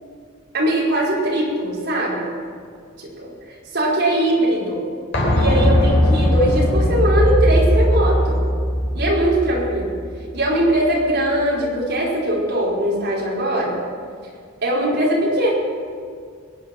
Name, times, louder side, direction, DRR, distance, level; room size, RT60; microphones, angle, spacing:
voice 1, 0.5-2.3 3.0-4.8 5.3-8.4 8.9-9.9 10.3-13.7 14.6-15.5, right 1 dB, 55° right, -5 dB, 4.9 m, -21 dB
sound 1, 5.1-10.8 11.1-11.2, equal, 65° left, 4.2 m, -19 dB
22.5 x 9.9 x 6.1 m, 2.1 s
head